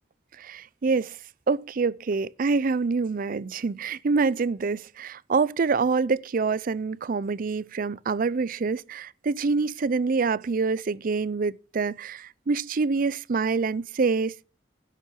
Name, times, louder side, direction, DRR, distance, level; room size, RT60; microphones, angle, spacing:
voice 1, 0.4-1.2 1.5-14.4, right 4 dB, 50° right, 0.5 m, -26 dB
11.0 x 7.5 x 7.5 m
head